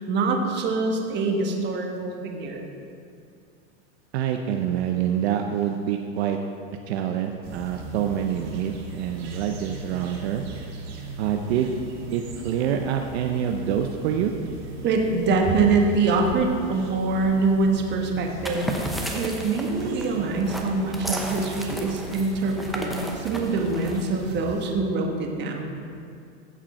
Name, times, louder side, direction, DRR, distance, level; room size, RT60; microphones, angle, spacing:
voice 1, 0.0-2.6 14.8-18.7 19.1-25.8, right 3 dB, 30° right, 2 dB, 1.3 m, -24 dB
voice 2, 4.1-6.4 6.9-10.4 11.2-11.7 12.1-14.3, right 9 dB, 65° right, 4 dB, 0.7 m, -26 dB
sound 1, 7.4-24.7, right 3 dB, 45° right, 1.8 m, -39 dB
sound 2, 18.3-24.4, equal, ahead, 0.7 m, -34 dB
14.5 x 5.0 x 4.3 m, 2.4 s
supercardioid pair, 130°, 34 cm